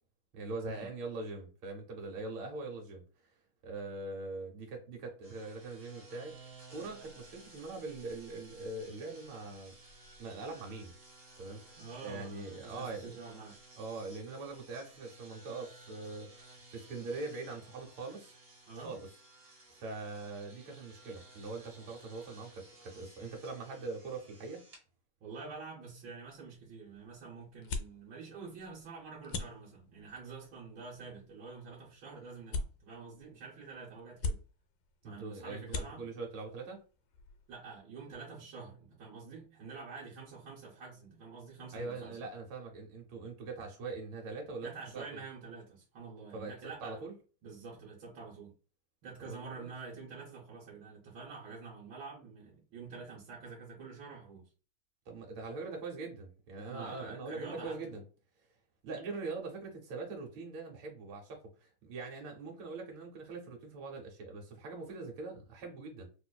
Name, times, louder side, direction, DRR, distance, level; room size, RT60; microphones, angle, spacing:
voice 1, 0.3-3.3 3.6-6.4 6.7-9.7 10.2-10.9 11.4-13.1 13.8-18.3 18.8-19.0 19.7-24.6 35.0-36.8 41.7-45.2 46.3-47.1 49.2-49.7 55.1-58.0 58.8-66.1, right 3 dB, 85° right, 1.8 m, -42 dB
sound 1, 5.2-24.8, right 2 dB, 40° right, 0.9 m, -56 dB
voice 2, 11.8-13.5 18.7-19.0 25.2-34.4 35.0-36.1 37.5-42.2 44.6-47.0 47.4-48.5 49.0-54.5 56.7-57.8, right 4 dB, 70° right, 1.6 m, -47 dB
sound 2, 26.2-37.8, left 3 dB, 75° left, 1.3 m, -44 dB
4.0 x 2.5 x 2.2 m
omnidirectional pair, 2.2 m